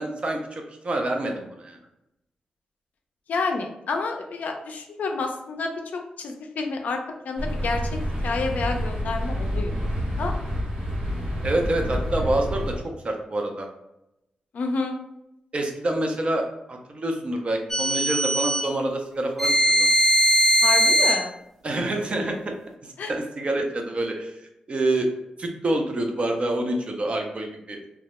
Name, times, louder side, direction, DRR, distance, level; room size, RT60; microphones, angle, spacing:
voice 1, 0.0-1.8 11.4-13.7 15.5-19.9 21.6-22.4 22.8-25.1 25.4-27.9, right 1 dB, 45° right, 2 dB, 0.5 m, -27 dB
voice 2, 3.3-7.9 8.2-9.8 10.2-10.3 14.5-15.0 20.6-21.3 23.0-23.1, left 3 dB, 70° left, 3 dB, 0.4 m, -29 dB
sound 1, 7.4-12.8, equal, 80° right, 1.0 m, -28 dB
sound 2, 17.7-18.7 19.4-21.2, equal, 5° left, 0.6 m, -20 dB
2.2 x 2.0 x 2.9 m, 0.87 s
cardioid pair, 50°, 3 cm